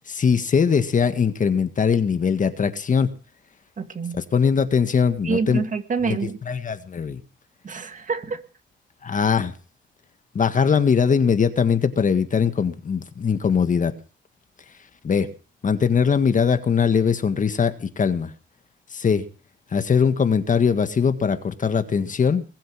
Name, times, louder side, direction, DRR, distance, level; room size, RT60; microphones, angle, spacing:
voice 1, 0.1-3.1 4.1-5.6 6.0-6.2 6.5-7.2 9.0-9.5 10.4-13.9 15.0-15.3 15.6-18.3 18.9-19.2 19.7-22.4, left 6 dB, 40° left, 10 dB, 1.8 m, -21 dB
voice 2, 3.8-4.2 5.2-6.4 7.6-8.4, right 5 dB, 40° right, 8 dB, 2.2 m, -27 dB
21.5 x 7.8 x 6.2 m, 0.37 s
cardioid pair, 90°, 20 cm